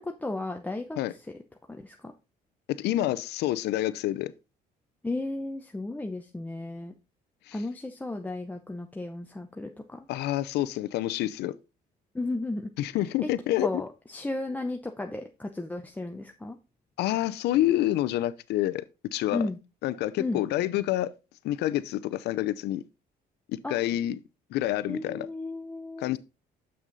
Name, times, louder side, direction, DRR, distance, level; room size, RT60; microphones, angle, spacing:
voice 1, 0.2-1.0 1.7-2.1 5.0-6.9 7.5-10.0 12.1-12.6 13.6-16.6 19.3-19.6 20.2-20.4 23.6-23.8 24.9-26.2, left 2 dB, 10° left, 0.7 m, -34 dB
voice 2, 2.7-4.3 7.5-7.6 10.1-11.5 12.8-13.8 17.0-18.8 19.1-19.5 19.8-21.1 21.4-22.8 23.5-24.2 24.5-25.3 26.0-26.2, left 14 dB, 80° left, 0.6 m, -28 dB
7.1 x 6.2 x 3.9 m
cardioid pair, 110°, 17 cm